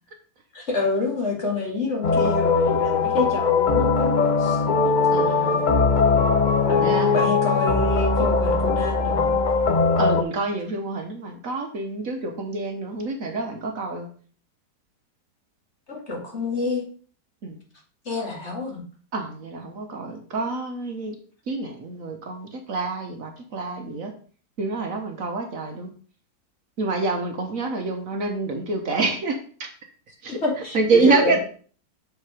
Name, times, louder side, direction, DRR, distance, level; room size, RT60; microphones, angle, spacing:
voice 1, 0.5-4.1 4.4-4.9 6.7-9.3 15.9-16.8 18.1-18.8 30.4-31.4, left 3 dB, 40° left, -1 dB, 2.3 m, -27 dB
sound 1, 2.0-10.2, left 4 dB, 65° left, 0.4 m, -20 dB
voice 2, 5.1-5.6 6.8-7.1 10.0-14.1 17.4-17.6 19.1-21.1 21.5-24.1 24.6-25.9 26.8-29.7 30.2-30.4 30.7-31.4, right 3 dB, 60° right, 4 dB, 1.3 m, -27 dB
6.7 x 5.2 x 4.8 m, 0.43 s
omnidirectional pair, 1.8 m